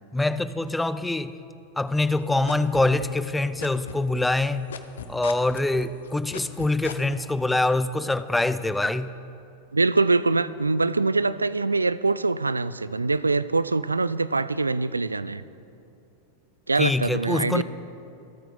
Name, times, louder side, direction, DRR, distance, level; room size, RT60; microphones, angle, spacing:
voice 1, 0.1-1.3 1.8-4.7 5.1-9.1 16.8-17.6, left 2 dB, 5° left, 14 dB, 0.5 m, -24 dB
sound 1, 1.9-3.3 3.6-7.2, left 8 dB, 65° left, 0.8 m, -37 dB
voice 2, 9.7-15.4 16.7-17.6, right 3 dB, 80° right, 16 dB, 0.3 m, -23 dB
26.5 x 9.0 x 4.0 m, 2.7 s
figure-of-eight pair, 90°, 0 cm